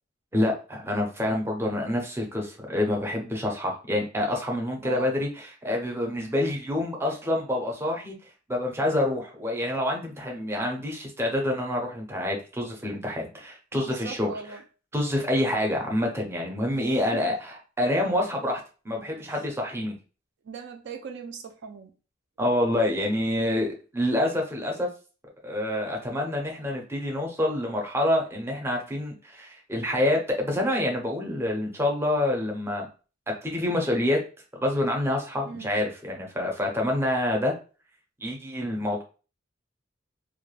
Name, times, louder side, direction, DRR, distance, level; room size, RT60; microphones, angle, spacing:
voice 1, 0.3-8.1 8.5-14.3 14.9-19.9 22.4-24.9 25.4-32.9 33.3-34.2 34.6-37.5 38.2-39.0, left 1 dB, 15° right, 1 dB, 0.5 m, -27 dB
voice 2, 13.7-14.6 16.7-17.2 19.3-19.4 20.4-21.9 35.5-35.8, right 5 dB, 65° right, 4 dB, 0.4 m, -39 dB
2.3 x 2.1 x 3.1 m, 0.35 s
head